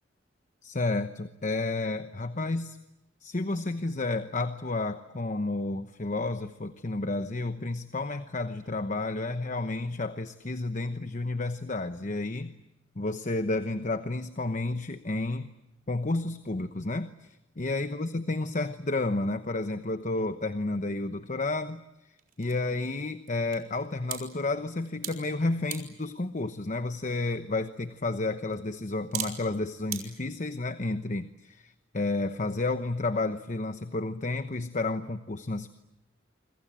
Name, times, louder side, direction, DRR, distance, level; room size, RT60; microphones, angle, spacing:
voice 1, 0.6-2.8 3.2-12.5 13.0-15.5 15.9-35.7, left 2 dB, 40° left, 10 dB, 1.0 m, -31 dB
sound 1, 20.6-30.0, right 10 dB, 50° right, 4.6 m, -44 dB
28.0 x 26.0 x 7.6 m, 0.91 s
head